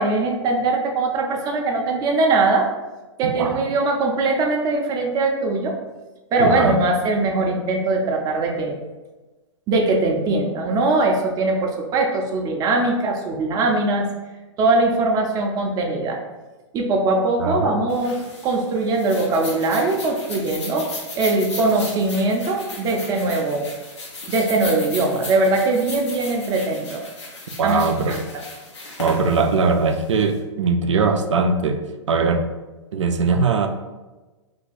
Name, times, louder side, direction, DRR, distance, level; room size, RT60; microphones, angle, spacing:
voice 1, 0.0-2.7 3.2-5.7 6.3-8.7 9.7-14.1 14.6-16.2 16.7-20.9 21.2-23.7 24.3-27.0 27.6-27.8 28.1-28.4, right 2 dB, 25° right, 1 dB, 0.6 m, -21 dB
voice 2, 6.4-6.8 17.4-17.7 27.6-28.2 29.0-31.8 32.1-32.5 32.9-33.7, right 4 dB, 80° right, 6 dB, 0.4 m, -20 dB
sound 1, 17.9-30.3, left 3 dB, 70° left, 1.1 m, -36 dB
2.7 x 2.2 x 4.0 m, 1.2 s
hypercardioid pair, 115°, 15 cm